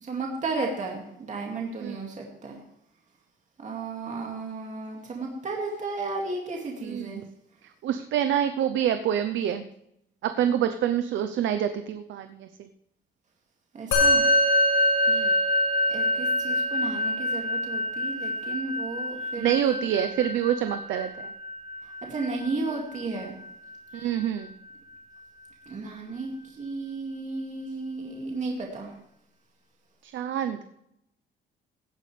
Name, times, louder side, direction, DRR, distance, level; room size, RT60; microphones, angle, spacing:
voice 1, 0.0-2.6 3.6-7.2 13.7-14.2 15.9-19.8 22.0-23.4 23.9-24.1 25.7-28.9, right 3 dB, 40° right, 0 dB, 2.3 m, -34 dB
voice 2, 6.8-7.2 7.8-9.7 10.2-12.5 15.1-15.3 19.4-21.3 23.9-24.5 30.0-30.6, right 10 dB, 75° right, 9 dB, 0.7 m, -27 dB
Musical instrument, 13.9-23.4, left 1 dB, 85° left, 5.6 m, -26 dB
17.0 x 9.4 x 3.3 m, 0.79 s
cardioid pair, 110°, 20 cm